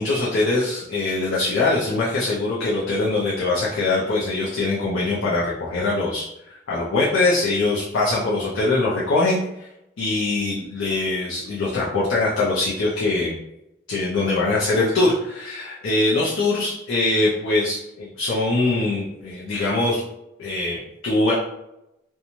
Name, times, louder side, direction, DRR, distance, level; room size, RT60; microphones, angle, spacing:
voice 1, 0.0-6.2 6.7-9.4 10.0-13.4 13.9-20.0 20.4-21.3, left 2 dB, 85° left, -6 dB, 0.5 m, -22 dB
2.9 x 2.2 x 2.6 m, 0.86 s
head